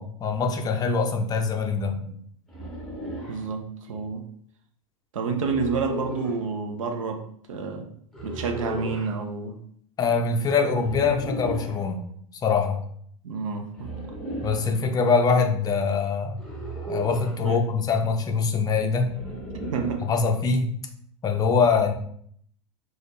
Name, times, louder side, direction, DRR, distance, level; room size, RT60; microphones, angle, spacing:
voice 1, 0.0-2.0 10.0-12.0 12.4-12.8 14.4-16.4 16.9-19.1 20.0-20.7 21.2-21.9, left 5 dB, 20° left, 3 dB, 0.5 m, -23 dB
sound 1, 2.5-3.4 5.4-6.4 8.1-9.1 10.8-11.8 13.7-14.7 16.4-17.4 19.1-20.1, right 1 dB, ahead, 1.1 m, -35 dB
voice 2, 3.3-4.2 5.1-7.2 7.5-7.9 8.2-9.6 13.2-13.9 17.4-17.6 19.5-20.0, right 4 dB, 65° right, 5 dB, 0.7 m, -29 dB
4.1 x 2.5 x 3.1 m, 0.64 s
figure-of-eight pair, 85°, 18 cm